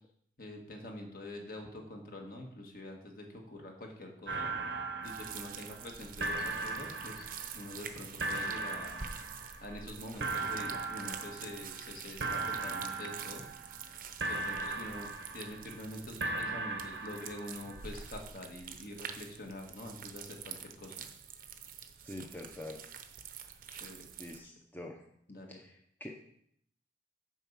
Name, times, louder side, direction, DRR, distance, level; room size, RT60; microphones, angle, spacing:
voice 1, 0.4-4.5 5.0-9.1 9.6-13.5 14.3-21.0 23.7-24.1 25.3-25.6, left 1 dB, 50° left, 1 dB, 1.7 m, -46 dB
sound 1, 4.3-5.9 6.2-7.8 8.2-9.8 10.2-11.9 12.2-13.9 14.2-15.8 16.2-17.8, right 3 dB, 80° right, 1.0 m, -38 dB
sound 2, 5.0-24.4, right 7 dB, 50° right, 0.8 m, -47 dB
voice 2, 22.0-22.8 24.2-25.0 25.5-26.1, left 1 dB, 10° left, 1 dB, 0.7 m, -45 dB
7.3 x 5.3 x 7.3 m, 0.70 s
head